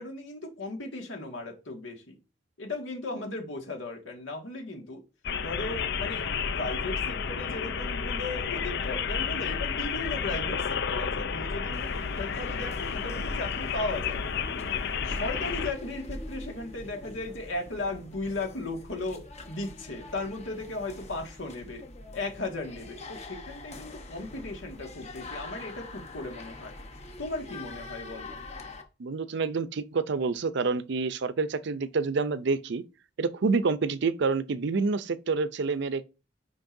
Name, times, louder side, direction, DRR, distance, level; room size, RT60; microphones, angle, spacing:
voice 1, 0.0-2.2 2.6-5.0 5.4-14.2 15.0-21.8 22.1-26.7 27.2-28.4, left 2 dB, 80° left, 1.9 m, -36 dB
sound 1, 5.2-15.7, left 6 dB, 60° left, 0.5 m, -31 dB
sound 2, 11.7-28.8, left 2 dB, 35° left, 1.0 m, -44 dB
voice 2, 29.0-32.8 33.2-36.0, right 4 dB, 65° right, 0.5 m, -28 dB
9.0 x 5.2 x 2.6 m
head